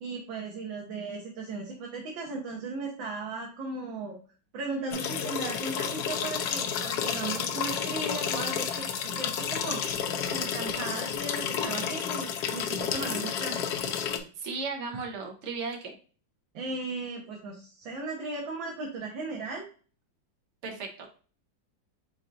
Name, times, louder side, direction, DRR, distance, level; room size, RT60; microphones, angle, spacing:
voice 1, 0.0-4.2 4.5-8.9 9.1-9.8 10.3-13.7 16.5-19.7, right 3 dB, 80° right, -1 dB, 1.7 m, -36 dB
sound 1, 4.9-14.2, left 8 dB, 70° left, 1.0 m, -31 dB
voice 2, 14.4-16.0 20.6-21.1, right 4 dB, 45° right, 2 dB, 1.0 m, -35 dB
4.7 x 4.2 x 2.5 m, 0.39 s
omnidirectional pair, 2.1 m